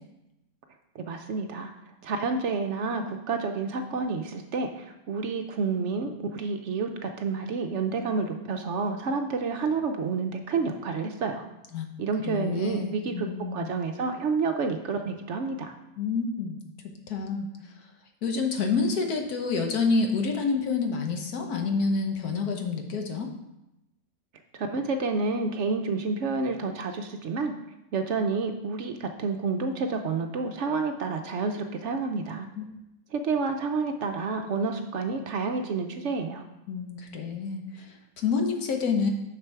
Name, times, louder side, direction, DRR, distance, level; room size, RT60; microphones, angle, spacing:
voice 1, 0.9-1.7 2.0-11.4 12.0-15.7 24.5-27.5 27.9-32.5 33.1-36.4, right 4 dB, 60° right, 6 dB, 0.8 m, -29 dB
voice 2, 12.2-13.7 16.0-16.6 17.1-17.5 18.2-23.3 32.6-32.7 36.7-39.1, left 4 dB, 90° left, 3 dB, 1.5 m, -28 dB
6.8 x 6.0 x 4.6 m, 0.91 s
omnidirectional pair, 1.6 m